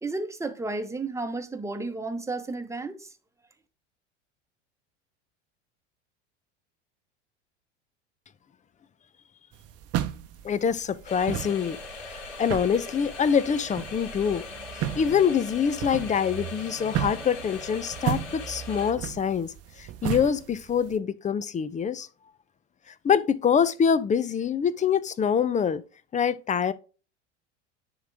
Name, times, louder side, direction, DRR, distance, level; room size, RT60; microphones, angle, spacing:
voice 1, 0.0-3.1, right 3 dB, 10° right, 1.1 m, -32 dB
sound 1, 9.5-20.9, right 11 dB, 40° right, 0.9 m, -35 dB
voice 2, 10.4-11.8 12.4-14.4 14.8-22.1 23.0-25.8 26.1-26.7, left 7 dB, 20° left, 0.6 m, -25 dB
sound 2, 11.1-18.9, left 4 dB, 65° left, 3.1 m, -41 dB
10.0 x 3.8 x 3.5 m
hypercardioid pair, 80°, 36 cm